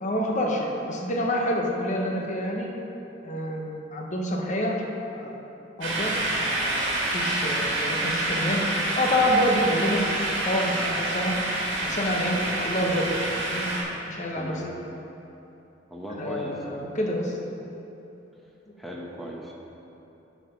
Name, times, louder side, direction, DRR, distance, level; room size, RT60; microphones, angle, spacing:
voice 1, 0.0-2.7 3.2-5.5 5.8-8.6 9.0-10.0 10.4-11.4 11.8-13.1 13.4-13.7 14.1-14.6 16.2-17.4, equal, 40° left, 0 dB, 1.0 m, -27 dB
sound 1, 5.8-13.8, right 1 dB, 75° right, 1.9 m, -27 dB
voice 2, 15.9-16.8 18.8-19.5, equal, ahead, -3 dB, 1.0 m, -37 dB
9.6 x 5.0 x 5.3 m, 3.0 s
head